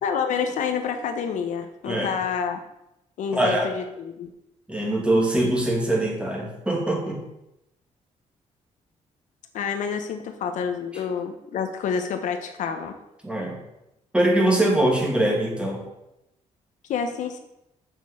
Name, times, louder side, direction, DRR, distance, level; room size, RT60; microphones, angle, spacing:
voice 1, 0.0-2.6 3.2-4.3 9.5-12.9 16.9-17.4, left 6 dB, 80° left, 6 dB, 1.2 m, -28 dB
voice 2, 3.3-3.7 4.7-7.2 13.2-13.6 14.1-15.8, right 1 dB, 10° right, 0 dB, 2.5 m, -22 dB
8.0 x 7.0 x 6.4 m, 0.86 s
cardioid pair, 150°, 13 cm